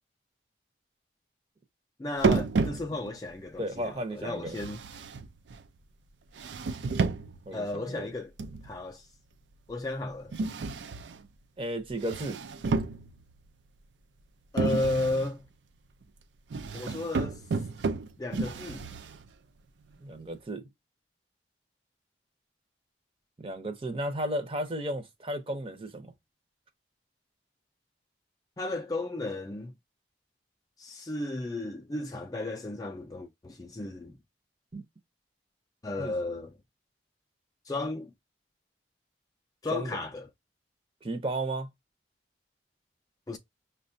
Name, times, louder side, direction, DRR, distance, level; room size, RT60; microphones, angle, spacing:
voice 1, 2.0-4.8 7.5-8.3 8.6-9.1 9.7-10.3 14.5-15.4 16.7-17.4 18.2-18.9 28.6-29.7 30.8-34.2 35.8-36.6 37.7-38.1 39.6-40.3 43.3-43.4, left 2 dB, 20° left, 0.4 m, -34 dB
sound 1, 2.2-3.3 4.5-5.7 6.4-7.5 8.4-8.8 10.3-11.3 11.9-13.4 14.6-15.3 16.5-19.3, right 4 dB, 85° right, 0.4 m, -31 dB
voice 2, 3.6-4.6 7.5-7.9 11.6-12.4 20.0-20.7 23.4-26.1 34.7-34.8 36.0-36.1 39.7-40.0 41.0-41.7, right 1 dB, 30° right, 0.6 m, -34 dB
5.6 x 2.2 x 2.6 m
head